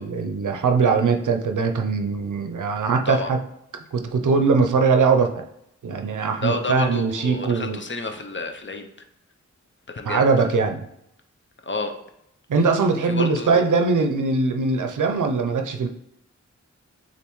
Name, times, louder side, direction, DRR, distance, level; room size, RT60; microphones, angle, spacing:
voice 1, 0.0-3.4 3.9-5.3 5.8-7.8 10.0-10.8 12.5-15.9, right 4 dB, 85° right, 5 dB, 0.5 m, -21 dB
voice 2, 6.4-8.9 9.9-10.5 11.6-11.9 13.0-13.6, left 3 dB, 40° left, 5 dB, 0.6 m, -30 dB
6.8 x 2.5 x 3.0 m, 0.79 s
wide cardioid pair, 55°, 30 cm